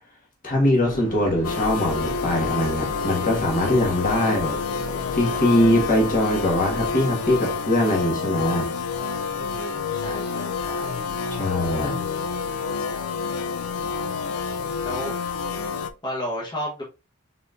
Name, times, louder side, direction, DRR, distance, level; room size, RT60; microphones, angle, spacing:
voice 1, 0.4-4.6 5.1-8.7 11.3-12.0, left 1 dB, 40° left, 1.6 m, -22 dB
sound 1, 0.8-6.9, equal, 65° left, 2.4 m, -37 dB
sound 2, 1.4-15.9, left 5 dB, 80° left, 0.4 m, -28 dB
voice 2, 9.4-10.9 14.8-15.2 16.0-16.8, equal, 20° left, 1.1 m, -32 dB
4.2 x 4.0 x 2.5 m
head